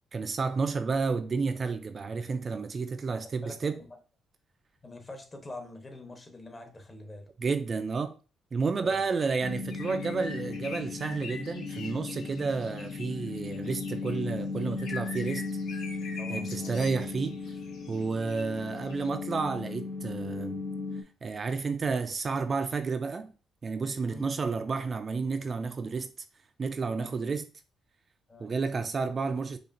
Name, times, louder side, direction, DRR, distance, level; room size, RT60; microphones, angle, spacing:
voice 1, 0.1-3.8 7.4-8.1 8.5-15.5 16.3-17.4 17.9-20.6 21.2-23.3 23.6-26.1 26.6-27.4 28.4-29.6, right 4 dB, 40° right, 0.3 m, -31 dB
voice 2, 4.8-7.3 8.8-8.9 16.2-16.7 24.0-24.3 26.9-27.1 28.3-28.5, left 2 dB, 30° left, 0.9 m, -45 dB
sound 1, 9.4-21.0, left 4 dB, 55° left, 0.6 m, -37 dB
sound 2, 9.6-14.3 14.6-19.1, left 4 dB, 80° left, 0.8 m, -45 dB
4.8 x 2.4 x 2.6 m
cardioid pair, 90°, 0 cm